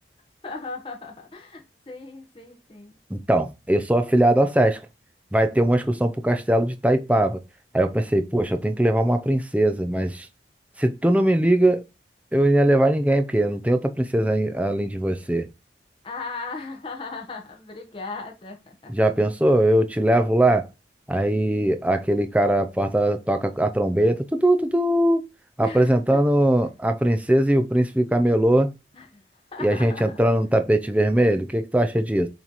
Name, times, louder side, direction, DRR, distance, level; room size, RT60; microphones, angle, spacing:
voice 1, 0.4-3.0 16.0-18.9 25.6-26.0 28.9-29.2 29.5-30.2, left 3 dB, 30° left, 1.2 m, -37 dB
voice 2, 3.1-4.8 5.3-7.4 7.7-10.3 10.8-11.8 12.3-15.5 18.9-20.7 21.1-25.2 25.6-28.7 29.6-32.3, right 1 dB, 10° right, 0.6 m, -20 dB
7.2 x 3.3 x 4.0 m
head